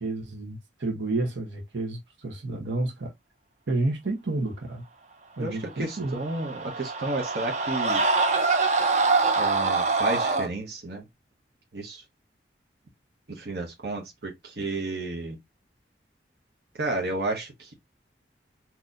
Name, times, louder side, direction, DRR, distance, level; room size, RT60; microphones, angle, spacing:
voice 1, 0.0-3.1 3.7-4.8 5.4-6.2, right 2 dB, 90° right, 1.1 m, -30 dB
voice 2, 5.4-8.0 9.4-11.0 11.7-12.0 13.3-15.4 16.8-17.7, right 2 dB, 65° right, 1.0 m, -32 dB
Screaming, 6.0-10.5, right 3 dB, 40° right, 0.5 m, -24 dB
4.0 x 2.8 x 2.4 m
head